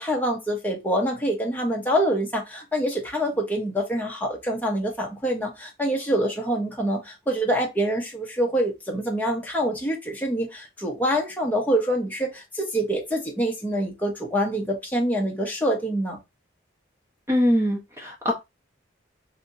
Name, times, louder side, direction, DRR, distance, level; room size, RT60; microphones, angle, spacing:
voice 1, 0.0-16.2, equal, 10° left, 0.9 m, -26 dB
voice 2, 17.3-18.3, left 1 dB, 15° right, 1.0 m, -22 dB
3.3 x 2.8 x 2.6 m
head